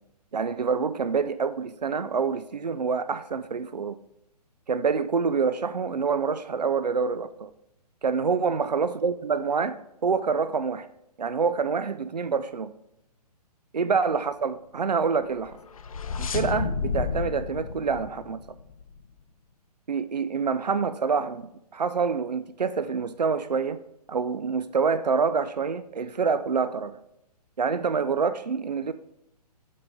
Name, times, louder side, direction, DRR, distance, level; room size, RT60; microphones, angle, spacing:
voice 1, 0.3-4.0 4.7-7.5 8.0-9.8 10.0-10.9 11.2-12.7 13.7-15.6 16.2-18.4 19.9-23.8 24.1-27.0 27.6-28.9, right 5 dB, 80° right, 0.4 m, -26 dB
sound 1, 15.3-19.0, left 5 dB, 55° left, 0.5 m, -32 dB
8.5 x 5.1 x 3.6 m
figure-of-eight pair, 130°, 21 cm